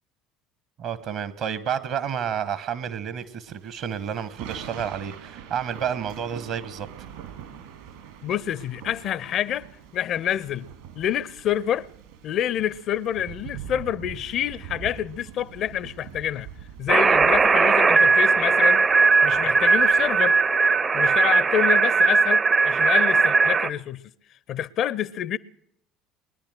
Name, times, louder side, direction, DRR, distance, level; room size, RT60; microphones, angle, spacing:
voice 1, 0.8-6.9, right 8 dB, 50° right, 1.1 m, -30 dB
Thunder / Rain, 3.5-21.0, right 8 dB, 65° right, 2.7 m, -44 dB
voice 2, 8.2-9.7 9.9-10.7 11.0-11.9 12.2-16.5 16.8-18.8 19.2-20.4 20.9-24.0 24.5-25.4, left 10 dB, 45° left, 0.5 m, -27 dB
sound 1, 16.9-23.7, right 4 dB, 25° right, 0.6 m, -19 dB
22.0 x 10.0 x 6.5 m
figure-of-eight pair, 60°, 0 cm